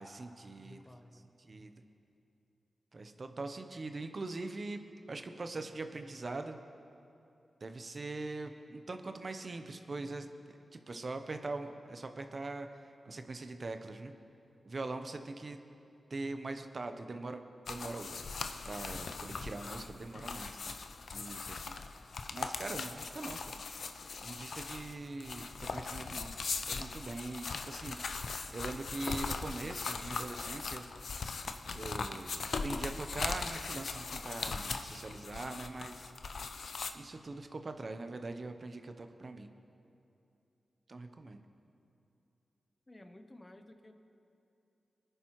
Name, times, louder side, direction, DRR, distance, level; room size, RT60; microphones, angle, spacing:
voice 1, 0.0-0.8 1.4-1.7 2.9-4.8 5.1-6.6 7.6-10.3 10.7-12.7 13.0-14.1 14.6-15.6 16.1-18.2 18.6-20.7 21.1-21.8 22.3-23.6 24.2-26.3 26.7-28.0 28.5-30.8 31.7-36.1 36.9-39.5 40.9-41.4, right 2 dB, 50° right, 7 dB, 0.7 m, -42 dB
voice 2, 0.6-1.3 15.0-15.1 42.9-43.9, left 1 dB, 30° left, 7 dB, 0.9 m, -54 dB
sound 1, 17.7-36.9, left 4 dB, 70° left, 0.5 m, -40 dB
20.0 x 10.0 x 3.0 m, 2.8 s
cardioid pair, 50°, 0 cm